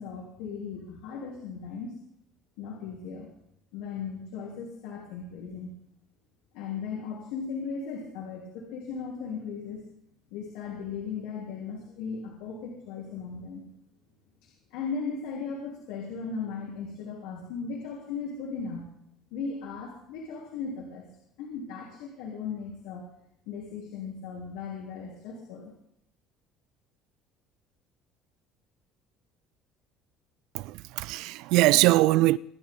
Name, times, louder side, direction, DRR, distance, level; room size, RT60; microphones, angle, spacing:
voice 1, 0.0-2.0 2.6-3.3 3.7-5.7 6.5-9.8 10.3-13.6 14.7-18.9 19.3-21.0 21.4-23.0 23.5-25.7, left 5 dB, 85° left, 3.4 m, -37 dB
voice 2, 30.5-32.4, right 18 dB, 70° right, 0.4 m, -22 dB
23.0 x 10.5 x 3.8 m
cardioid pair, 160°, 0 cm